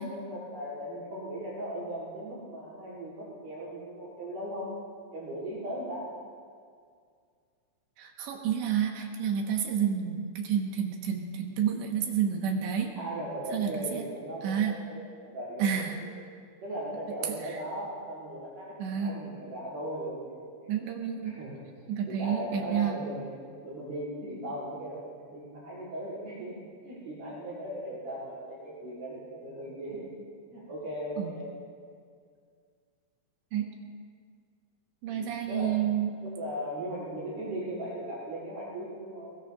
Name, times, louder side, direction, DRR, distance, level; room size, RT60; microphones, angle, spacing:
voice 1, 0.0-4.7 5.1-6.1 13.0-16.1 16.6-20.7 21.2-21.7 22.1-23.3 23.6-30.1 30.5-31.5 35.1-35.8 36.2-39.4, right 1 dB, 55° right, -14 dB, 7.3 m, -38 dB
voice 2, 8.0-13.0 13.5-14.1 14.4-14.7 15.6-16.0 17.4-17.6 18.8-19.2 20.7-21.4 21.9-23.0 31.2-31.3 33.5-33.7 35.0-36.1, right 8 dB, 75° right, 1 dB, 3.4 m, -30 dB
23.0 x 20.0 x 2.6 m, 2.1 s
omnidirectional pair, 5.6 m